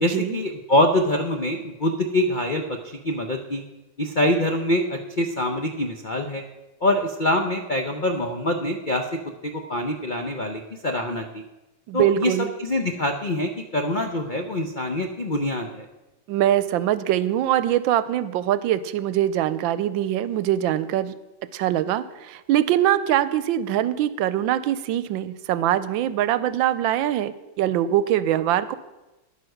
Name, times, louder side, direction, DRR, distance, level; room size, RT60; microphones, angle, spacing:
voice 1, 0.0-2.8 3.0-3.6 4.0-6.4 6.8-9.1 9.4-11.4 11.9-12.3 12.6-15.9, left 1 dB, 65° left, 4 dB, 0.5 m, -24 dB
voice 2, 11.9-12.5 16.3-21.1 21.5-28.8, right 12 dB, 90° right, 14 dB, 1.4 m, -23 dB
10.0 x 9.4 x 6.5 m, 1.0 s
omnidirectional pair, 2.1 m